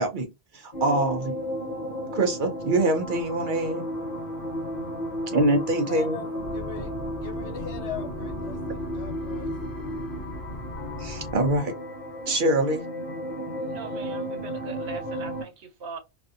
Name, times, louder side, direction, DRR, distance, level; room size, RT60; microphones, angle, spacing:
voice 1, 0.0-1.4 2.1-3.8 5.3-6.2 11.0-11.7 12.3-12.8, right 2 dB, 60° right, 0.6 m, -24 dB
sound 1, 0.7-15.4, equal, 50° left, 0.8 m, -34 dB
sound 2, 3.0-11.3, left 1 dB, 30° left, 0.4 m, -48 dB
voice 2, 5.9-6.9 7.2-9.5, left 8 dB, 75° left, 1.1 m, -40 dB
sound 3, 6.4-11.6, left 2 dB, 30° right, 0.8 m, -38 dB
voice 3, 13.6-16.0, right 4 dB, 75° right, 1.0 m, -41 dB
2.5 x 2.5 x 2.4 m
omnidirectional pair, 1.2 m